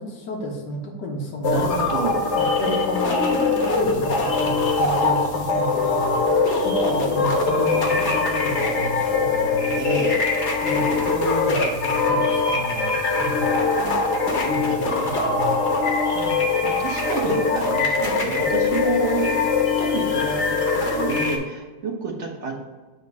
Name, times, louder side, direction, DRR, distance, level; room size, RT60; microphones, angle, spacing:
voice 1, 0.0-1.8 2.3-6.3 6.6-9.8 10.6-12.9 13.2-14.0 14.5-15.7, equal, 75° left, 0 dB, 1.8 m, -31 dB
sound 1, 1.4-21.4, left 4 dB, 45° left, 1.2 m, -22 dB
voice 2, 1.5-2.2 3.8-4.1 7.6-8.0 9.8-10.2 14.7-15.8 16.1-19.4 19.8-22.5, right 4 dB, 45° right, 1 dB, 1.2 m, -30 dB
8.4 x 2.9 x 5.3 m, 1.3 s
omnidirectional pair, 1.8 m